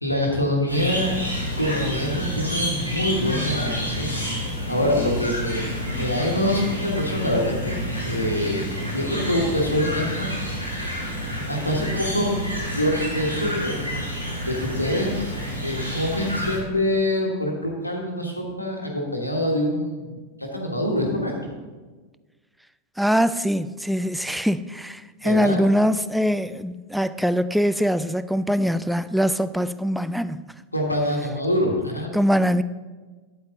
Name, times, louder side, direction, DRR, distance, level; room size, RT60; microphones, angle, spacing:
voice 1, 0.0-1.1 1.6-10.3 11.4-12.3 12.7-13.8 14.5-15.3 15.6-21.5 25.2-25.6 30.7-32.1, left 1 dB, 85° left, 1.4 m, -25 dB
sound 1, 0.7-16.6, equal, 90° right, 2.0 m, -29 dB
voice 2, 23.0-30.4 32.1-32.6, equal, ahead, 0.3 m, -22 dB
8.7 x 8.2 x 3.8 m
figure-of-eight pair, 90°, 0 cm